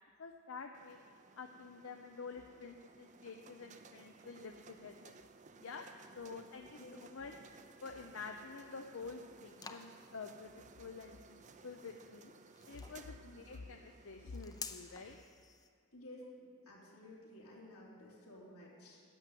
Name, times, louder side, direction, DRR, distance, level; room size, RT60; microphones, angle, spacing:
voice 1, 0.2-1.0 1.4-5.1 5.6-7.3 7.8-12.3 12.7-15.2, left 4 dB, 60° left, 5 dB, 0.6 m, -49 dB
sound 1, 0.7-15.2, right 4 dB, 35° right, 0.5 m, -59 dB
sound 2, 8.5-15.7, left 5 dB, 15° left, 0.5 m, -53 dB
voice 2, 15.9-19.0, left 1 dB, 80° left, -4 dB, 3.4 m, -54 dB
11.5 x 7.5 x 9.1 m, 2.2 s
head